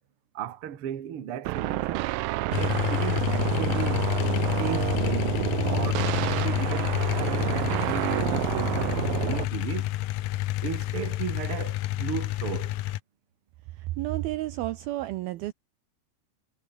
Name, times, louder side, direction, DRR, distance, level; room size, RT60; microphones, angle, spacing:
voice 1, 0.3-2.1 2.6-4.1 4.6-9.9 10.6-12.8, right 9 dB, 45° right, 2.0 m, -36 dB
sound 1, 1.5-9.5, right 18 dB, 90° right, 2.0 m, -29 dB
sound 2, 2.5-13.0, left 15 dB, 80° left, 1.9 m, -28 dB
voice 2, 13.7-15.5, right 16 dB, 75° right, 2.4 m, -31 dB
omnidirectional pair, 4.9 m